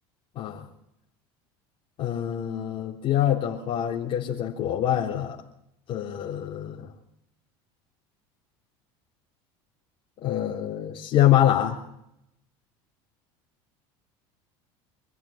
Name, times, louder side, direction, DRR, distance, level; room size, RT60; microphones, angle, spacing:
voice 1, 2.0-5.4 5.9-6.9 10.2-11.8, left 11 dB, 50° left, -3 dB, 3.5 m, -25 dB
26.0 x 15.5 x 8.8 m, 0.79 s
supercardioid pair, 110°, 12 cm